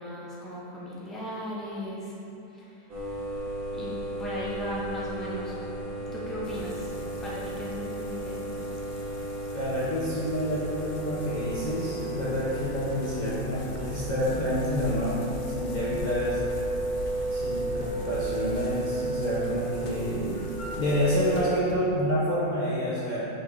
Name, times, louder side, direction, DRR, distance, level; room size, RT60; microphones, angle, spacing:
voice 1, 0.0-2.1 2.5-2.7 3.7-5.5 6.1-6.9 7.2-8.4, equal, ahead, -7 dB, 0.9 m, -37 dB
sound 1, 2.9-21.5, right 2 dB, 70° right, 2.0 m, -34 dB
sound 2, 6.4-21.4, left 2 dB, 65° left, 0.4 m, -43 dB
voice 2, 9.5-16.4 17.3-20.4 20.8-23.3, equal, 35° left, -9 dB, 0.8 m, -28 dB
6.0 x 5.9 x 3.9 m, 2.9 s
omnidirectional pair, 1.6 m